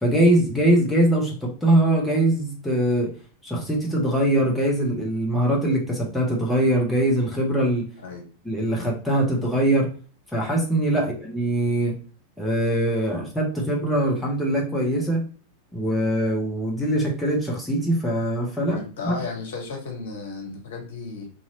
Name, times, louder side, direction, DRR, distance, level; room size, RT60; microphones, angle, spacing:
voice 1, 0.0-3.1 3.4-7.9 8.4-9.9 10.3-11.9 12.4-15.2 15.7-18.8 19.0-19.2, right 1 dB, 5° left, -3 dB, 0.9 m, -22 dB
voice 2, 18.7-21.3, left 3 dB, 60° left, 1 dB, 0.9 m, -34 dB
2.9 x 2.8 x 2.8 m, 0.40 s
figure-of-eight pair, 90°, 0 cm